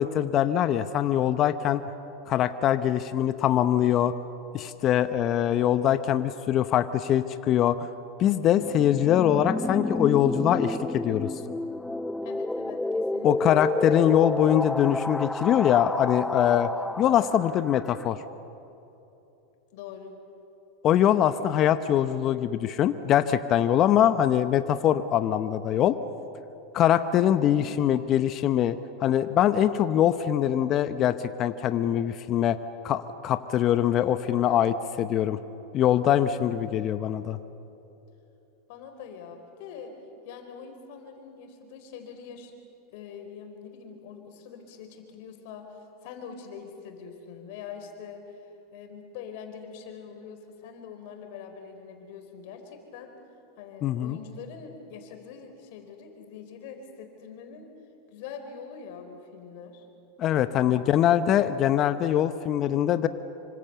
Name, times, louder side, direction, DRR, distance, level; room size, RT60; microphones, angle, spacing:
voice 1, 0.0-1.8 2.3-4.1 4.5-7.8 8.2-11.3 13.2-16.7 17.0-18.2 20.8-26.0 26.7-32.6 32.8-35.4 35.7-37.4 53.8-54.2 60.2-63.1, left 10 dB, 40° left, 11 dB, 0.9 m, -23 dB
sound 1, 8.6-18.1, left 2 dB, 5° left, 0.6 m, -31 dB
voice 2, 12.2-13.8 19.7-20.1 38.7-40.0 40.2-42.5 42.9-48.4 48.7-53.1 53.6-57.7 58.1-59.9 60.6-61.5, left 6 dB, 60° left, 6 dB, 4.5 m, -44 dB
26.5 x 25.5 x 7.0 m, 3.0 s
hypercardioid pair, 95°, 0 cm